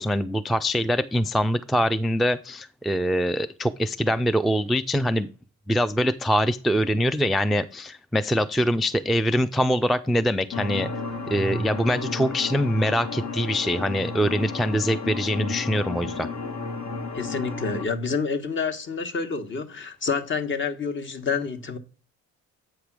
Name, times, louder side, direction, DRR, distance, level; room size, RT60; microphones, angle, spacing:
voice 1, 0.0-5.3 5.7-10.9 11.3-16.3, equal, ahead, 0.3 m, -24 dB
sound 1, 10.5-17.9, left 3 dB, 65° left, 1.3 m, -32 dB
voice 2, 17.1-21.8, left 5 dB, 40° left, 1.1 m, -28 dB
7.9 x 3.3 x 6.0 m
cardioid pair, 90°, 30 cm